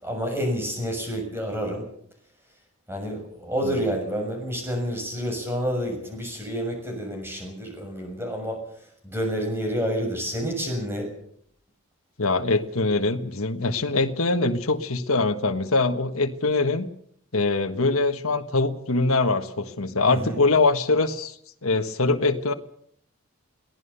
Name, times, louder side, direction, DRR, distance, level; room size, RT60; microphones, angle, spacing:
voice 1, 0.0-1.8 2.9-8.6 9.0-11.1 20.1-20.4, equal, 10° right, 3 dB, 6.7 m, -29 dB
voice 2, 3.6-4.1 12.2-16.9 17.3-21.4 21.6-22.5, left 3 dB, 75° left, 6 dB, 1.5 m, -23 dB
23.0 x 17.5 x 7.0 m, 0.65 s
head